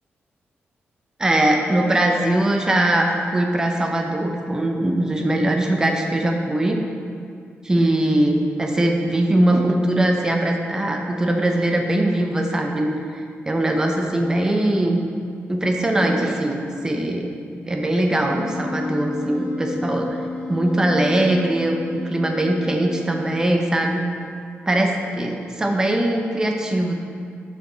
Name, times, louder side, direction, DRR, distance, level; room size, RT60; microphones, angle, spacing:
voice 1, 1.2-6.8 7.6-15.0 15.5-17.3 17.6-20.2 20.5-24.0 24.7-26.9, right 1 dB, 15° right, 2 dB, 0.6 m, -21 dB
Wind instrument woodwind instrument, 18.2-23.6, left 3 dB, 30° left, 1.8 m, -32 dB
7.0 x 5.7 x 3.8 m, 2.3 s
wide cardioid pair, 175°, 4 cm